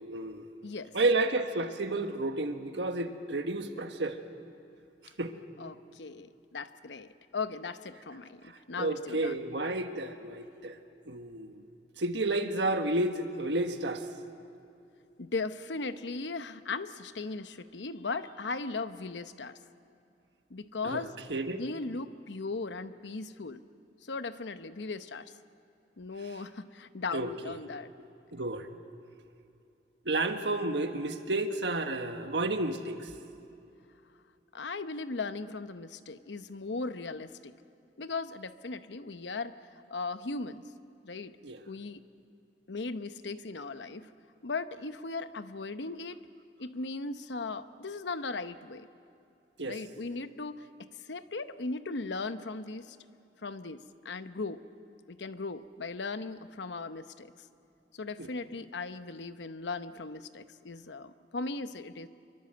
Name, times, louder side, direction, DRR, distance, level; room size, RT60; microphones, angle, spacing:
voice 1, 0.0-0.4 0.9-4.2 5.2-5.3 8.4-10.8 11.0-11.6 12.0-14.0 20.8-21.0 21.3-21.6 27.1-27.6 28.3-28.7 30.0-33.1 41.4-41.6 49.6-49.8 58.2-58.3, right 2 dB, 80° right, 7 dB, 1.6 m, -31 dB
voice 2, 0.6-1.0 5.6-9.4 15.2-19.6 20.5-21.1 21.5-23.6 24.0-25.3 26.0-27.9 34.5-37.6 38.0-39.6 39.9-40.6 41.0-41.4 41.7-42.0 42.7-44.1 44.4-46.2 46.6-48.9 49.6-53.0 53.4-54.6 55.1-57.3 57.9-62.1, left 3 dB, 85° left, 11 dB, 0.9 m, -38 dB
25.5 x 23.5 x 7.8 m, 2.6 s
head